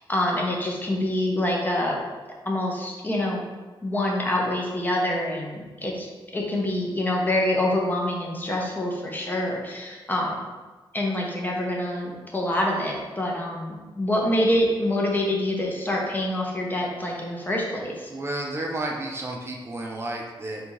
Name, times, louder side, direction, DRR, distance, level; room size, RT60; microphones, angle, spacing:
voice 1, 0.0-2.0 2.4-3.4 3.8-6.1 6.3-10.4 10.9-18.1, left 1 dB, 20° left, -1 dB, 0.8 m, -26 dB
voice 2, 18.1-20.7, right 2 dB, 30° right, -1 dB, 0.5 m, -32 dB
3.5 x 2.7 x 4.6 m, 1.3 s
wide cardioid pair, 110°, 9 cm